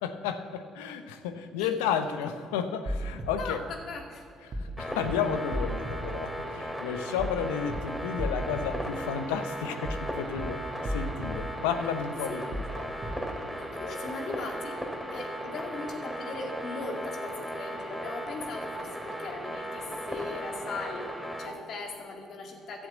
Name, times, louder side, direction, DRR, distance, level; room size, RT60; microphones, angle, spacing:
voice 1, 0.0-3.6 4.4-13.2, left 7 dB, 85° left, 9 dB, 0.8 m, -32 dB
sound 1, 2.9-3.3 4.5-4.7 5.0-5.1 5.5-6.0 7.2-7.4 7.7-7.8 8.2-8.6 9.9-10.1 10.4-10.5 10.8-11.3 12.5-12.7 13.0-13.1, equal, 50° right, 1.9 m, -33 dB
voice 2, 3.4-4.2 12.3-12.4 13.7-14.8 15.1-21.1 21.4-22.9, left 3 dB, 65° left, 2 dB, 2.2 m, -39 dB
sound 2, 4.8-21.5, equal, 5° left, 2.9 m, -37 dB
12.0 x 7.9 x 8.2 m, 2.4 s
hypercardioid pair, 55°, 0 cm